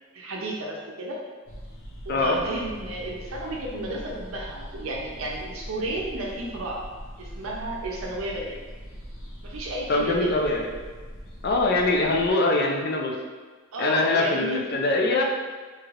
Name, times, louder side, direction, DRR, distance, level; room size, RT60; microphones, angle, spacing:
voice 1, 0.1-1.2 2.0-6.8 7.2-8.6 9.4-10.6 13.7-14.6, right 1 dB, 85° right, -1 dB, 0.6 m, -32 dB
sound 1, 1.5-12.3, equal, 85° left, 0.7 m, -41 dB
voice 2, 9.9-10.7 11.4-13.1 13.8-15.2, left 2 dB, 50° left, 1 dB, 0.4 m, -23 dB
3.2 x 2.8 x 2.4 m, 1.4 s
head